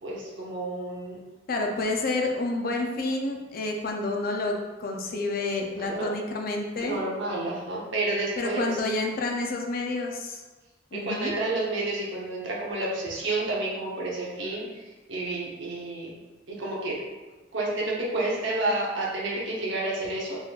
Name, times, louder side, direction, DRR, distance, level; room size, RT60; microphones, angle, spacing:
voice 1, 0.0-1.2 5.8-6.1 6.8-8.8 10.9-14.6 15.1-16.1 16.5-17.0 17.5-20.4, right 2 dB, 70° right, -4 dB, 0.8 m, -30 dB
voice 2, 1.5-7.0 8.4-10.4 10.9-11.3, left 2 dB, 45° left, 2 dB, 0.4 m, -29 dB
3.9 x 3.1 x 2.3 m, 1.2 s
head